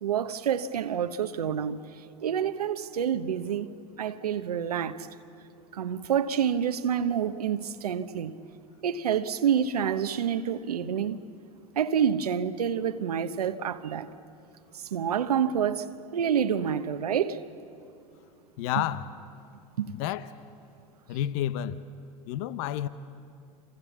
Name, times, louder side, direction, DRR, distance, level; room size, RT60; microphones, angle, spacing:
voice 1, 0.0-3.7 4.0-5.1 5.7-8.3 8.8-11.2 11.8-14.1 14.7-15.9 16.1-17.4 18.8-18.9 19.8-19.9, right 8 dB, 85° right, 0.9 m, -28 dB
voice 2, 18.6-19.1 19.9-20.3 21.1-21.8 22.3-22.9, left 11 dB, 65° left, 0.9 m, -30 dB
27.5 x 27.0 x 7.2 m
hypercardioid pair, 85°, 19 cm